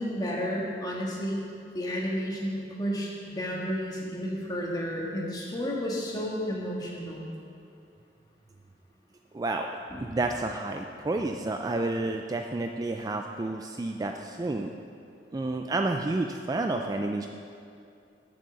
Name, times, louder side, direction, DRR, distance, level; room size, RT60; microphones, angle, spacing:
voice 1, 0.0-1.4 1.7-7.3 9.9-10.1, equal, 25° left, -3 dB, 1.6 m, -32 dB
voice 2, 9.3-9.7 10.0-14.7 15.3-17.3, right 2 dB, 20° right, 4 dB, 0.3 m, -30 dB
8.5 x 6.3 x 6.8 m, 2.5 s
head